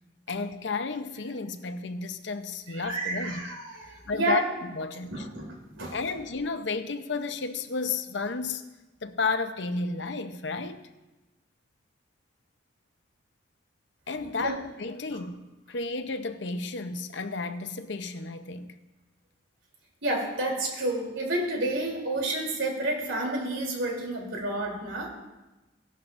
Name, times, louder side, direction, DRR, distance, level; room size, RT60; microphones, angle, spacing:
voice 1, 0.3-3.4 4.1-5.2 5.9-8.7 9.0-10.8 14.1-18.7, left 4 dB, 65° left, 9 dB, 0.8 m, -32 dB
voice 2, 2.7-4.5 5.1-6.0 14.4-14.5 20.0-25.1, right 2 dB, 90° right, -1 dB, 3.3 m, -30 dB
17.0 x 12.0 x 2.6 m, 1.1 s
head